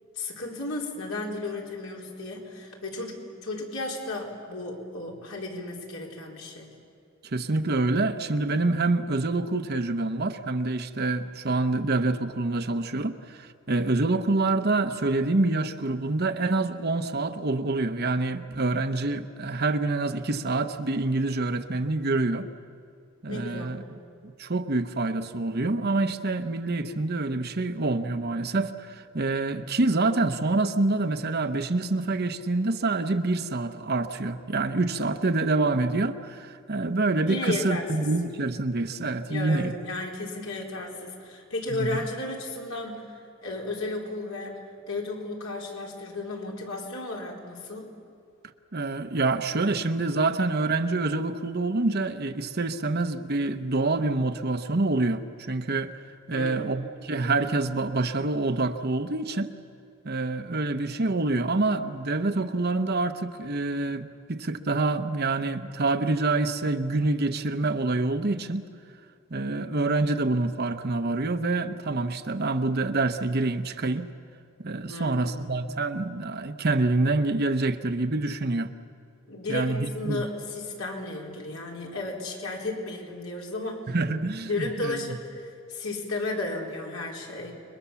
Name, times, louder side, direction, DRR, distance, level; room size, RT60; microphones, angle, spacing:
voice 1, 0.1-6.7 23.3-23.8 37.3-38.1 39.3-43.1 43.4-47.9 56.3-56.7 74.9-75.5 79.3-83.8 84.4-87.5, left 2 dB, 80° left, 4.3 m, -34 dB
voice 2, 7.2-22.5 23.2-23.8 24.2-39.7 41.7-42.0 48.7-55.9 56.3-59.5 60.0-68.7 69.3-74.1 74.6-78.7 79.5-80.2 83.9-85.2, right 2 dB, 50° right, 0.9 m, -26 dB
29.5 x 22.0 x 7.1 m
head